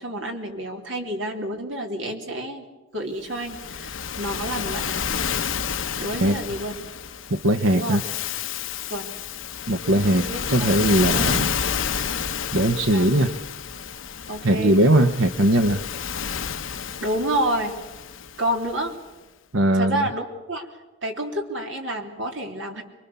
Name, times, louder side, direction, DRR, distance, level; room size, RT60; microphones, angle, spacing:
voice 1, 0.0-2.7 2.9-5.0 6.0-6.8 7.7-8.0 8.9-9.1 10.3-10.4 12.9-13.0 14.3-14.8 17.0-17.8 18.4-18.9 19.7-20.7 21.0-22.8, right 1 dB, 70° right, 3 dB, 3.3 m, -29 dB
Waves surf, 3.3-18.8, left 7 dB, 85° left, 0.9 m, -30 dB
voice 2, 7.3-8.0 9.7-11.6 12.5-13.3 14.4-15.8 19.5-20.1, right 1 dB, 85° right, 8 dB, 1.1 m, -20 dB
26.5 x 22.5 x 7.0 m, 1.1 s
head